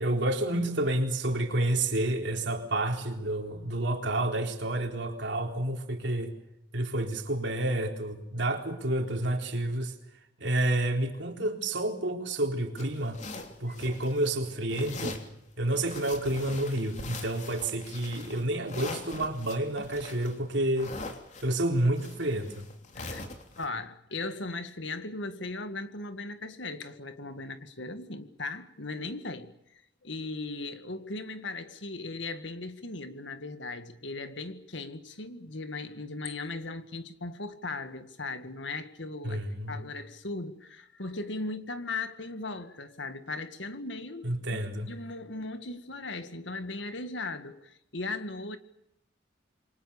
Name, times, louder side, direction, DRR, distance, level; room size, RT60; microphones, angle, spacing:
voice 1, 0.0-6.3 6.7-9.9 10.4-13.2 13.6-15.2 15.6-20.9 21.4-22.7 39.2-39.9 44.2-44.9, right 1 dB, 65° right, 4.0 m, -29 dB
sound 1, 12.8-14.4 14.7-15.3 15.7-23.7, left 3 dB, 40° left, 3.3 m, -42 dB
voice 2, 22.9-23.3 23.6-29.5 30.0-44.6 44.9-48.6, left 3 dB, 70° left, 2.0 m, -38 dB
28.0 x 24.0 x 7.1 m
head